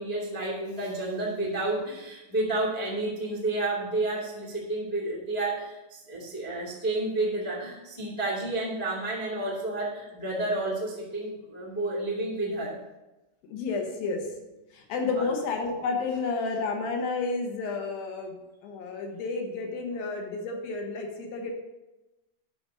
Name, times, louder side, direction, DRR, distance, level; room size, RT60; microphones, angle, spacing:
voice 1, 0.0-12.7 15.1-15.3, right 2 dB, 50° left, -5 dB, 0.4 m, -30 dB
voice 2, 13.5-14.3 14.7-18.3 18.6-21.5, left 4 dB, 65° left, 3 dB, 2.6 m, -31 dB
9.6 x 6.1 x 5.3 m, 1.0 s
omnidirectional pair, 5.1 m